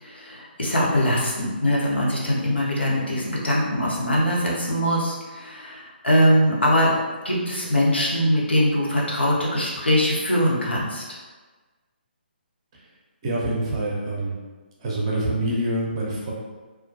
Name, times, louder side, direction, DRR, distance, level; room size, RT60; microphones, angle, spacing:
voice 1, 0.0-11.0, equal, 80° left, -4 dB, 0.7 m, -22 dB
voice 2, 13.2-14.3 14.8-16.3, right 1 dB, 30° right, -4 dB, 0.6 m, -26 dB
2.2 x 2.1 x 2.6 m, 1.3 s
figure-of-eight pair, 140°, 6 cm